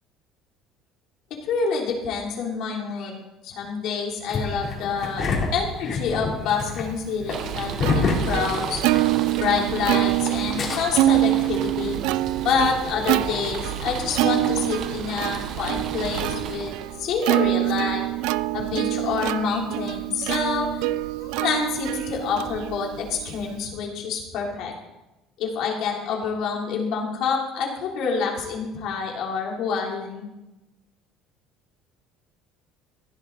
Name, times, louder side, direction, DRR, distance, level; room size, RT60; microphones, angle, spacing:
voice 1, 1.4-5.2 5.5-8.8 9.3-12.0 12.4-18.0 18.5-20.9 21.2-24.7 25.4-30.3, left 5 dB, 60° left, -1 dB, 3.3 m, -27 dB
Engine starting, 4.3-9.2 9.4-9.5 10.3-10.8, left 4 dB, 40° left, 3.2 m, -27 dB
Plucked string instrument, 6.9-23.7, right 17 dB, 80° right, 0.4 m, -26 dB
sound 1, 7.3-16.9, right 7 dB, 55° right, 1.1 m, -33 dB
16.0 x 11.0 x 4.0 m, 1.0 s
cardioid pair, 140°, 0 cm